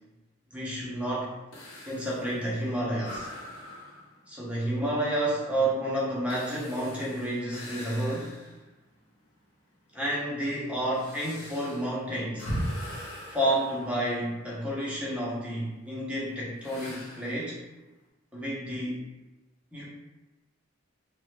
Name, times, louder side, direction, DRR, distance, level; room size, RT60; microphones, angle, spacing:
voice 1, 0.5-1.3 1.9-3.3 4.3-8.4 9.9-12.5 13.3-17.6 18.3-19.0 19.7-19.9, right 1 dB, 5° right, -6 dB, 0.6 m, -30 dB
sound 1, 1.5-8.7 9.2-9.3 10.0-14.6 16.6-17.4, equal, 80° left, 0.7 m, -40 dB
3.2 x 2.1 x 3.1 m, 1.1 s
head